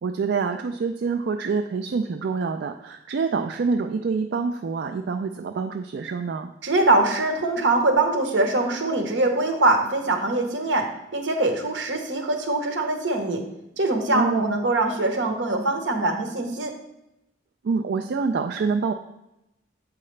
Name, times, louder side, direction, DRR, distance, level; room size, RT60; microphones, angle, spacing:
voice 1, 0.0-6.5 14.1-14.5 17.6-18.9, right 4 dB, 65° right, 5 dB, 0.3 m, -26 dB
voice 2, 6.6-13.4 13.7-16.7, right 2 dB, 80° right, 4 dB, 1.0 m, -23 dB
7.7 x 4.7 x 3.2 m, 0.88 s
head